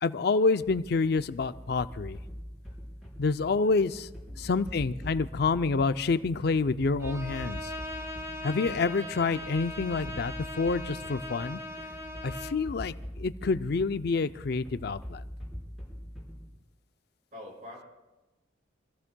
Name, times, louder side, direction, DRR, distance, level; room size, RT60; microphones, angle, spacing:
voice 1, 0.0-2.2 3.2-4.1 4.4-7.7 8.4-11.6 12.2-15.2, left 4 dB, 55° left, 12 dB, 0.5 m, -28 dB
sound 1, 0.7-16.6, equal, ahead, 4.2 m, -44 dB
voice 2, 4.3-4.7 17.3-17.8, left 1 dB, 45° right, -2 dB, 5.3 m, -46 dB
Bowed string instrument, 7.0-12.7, left 1 dB, 15° right, 1.0 m, -40 dB
26.5 x 15.0 x 2.3 m, 1.1 s
head